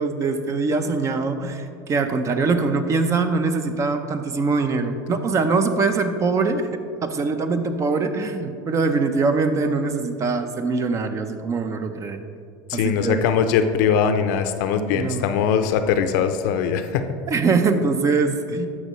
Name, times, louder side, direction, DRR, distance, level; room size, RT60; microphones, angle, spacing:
voice 1, 0.0-12.2 12.7-13.2 14.9-15.3 17.3-18.7, right 4 dB, 30° right, 8 dB, 0.7 m, -23 dB
voice 2, 12.7-17.0, left 7 dB, 75° left, 8 dB, 0.6 m, -21 dB
12.0 x 6.3 x 3.1 m, 2.3 s
supercardioid pair, 115°, 10 cm